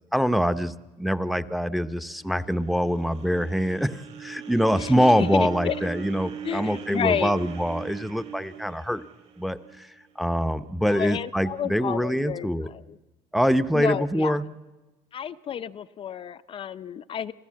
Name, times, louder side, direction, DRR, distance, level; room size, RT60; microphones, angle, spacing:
voice 1, 0.1-9.0 9.4-12.7 13.3-14.4, equal, ahead, 12 dB, 0.8 m, -24 dB
sound 1, 2.0-10.2, right 8 dB, 55° right, 3.1 m, -40 dB
voice 2, 4.8-5.9 6.4-7.4 10.8-13.0 13.7-14.3 15.1-17.3, left 8 dB, 40° left, 11 dB, 0.6 m, -31 dB
29.0 x 14.5 x 7.5 m, 1.2 s
cardioid pair, 105°, 14 cm